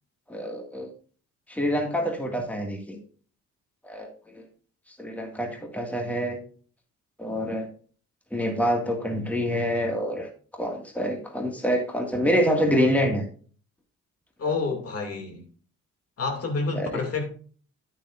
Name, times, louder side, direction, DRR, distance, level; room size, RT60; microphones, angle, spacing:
voice 1, 0.3-0.9 1.5-3.0 3.8-4.1 4.4-4.5 5.0-6.4 7.2-7.7 8.3-10.3 10.5-13.3 16.8-17.0, equal, 5° left, 1.9 m, -26 dB
voice 2, 14.4-15.5 16.2-17.3, left 4 dB, 50° left, 2.5 m, -28 dB
9.4 x 8.4 x 2.5 m
cardioid pair, 90°, 30 cm